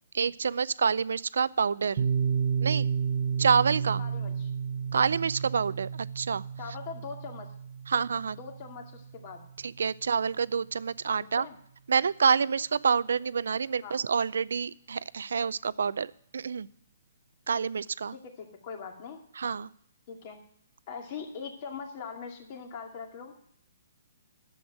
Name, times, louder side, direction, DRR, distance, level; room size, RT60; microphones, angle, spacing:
voice 1, 0.1-2.1 2.6-2.9 3.4-4.0 4.9-6.4 7.9-8.4 9.6-11.5 11.9-16.1 16.3-16.7 17.5-18.2 19.4-19.7, right 6 dB, 80° right, 19 dB, 0.4 m, -27 dB
Piano, 2.0-9.4, right 7 dB, 45° right, 0.8 m, -32 dB
voice 2, 4.0-4.5 6.6-7.5 8.4-9.4 11.4-11.6 13.8-14.0 18.1-19.2 20.1-20.4 20.9-23.4, left 6 dB, 40° left, 3 dB, 2.2 m, -41 dB
10.5 x 7.9 x 6.1 m, 0.66 s
hypercardioid pair, 160°, 0 cm